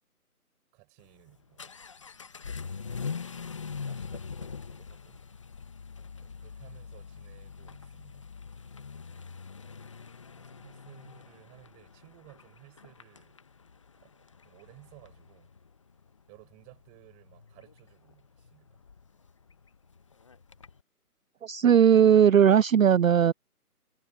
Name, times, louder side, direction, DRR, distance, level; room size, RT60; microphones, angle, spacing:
voice 1, 0.7-1.7 2.8-3.2 3.8-5.2 6.2-8.3 10.4-13.4 14.0-15.5 16.3-18.8, right 30 dB, 15° right, 5.1 m, -57 dB
Vehicle / Accelerating revving vroom, 1.0-20.8, left 5 dB, 20° left, 0.9 m, -43 dB
voice 2, 21.4-23.3, right 8 dB, 60° right, 0.5 m, -18 dB
figure-of-eight pair, 160°, 46 cm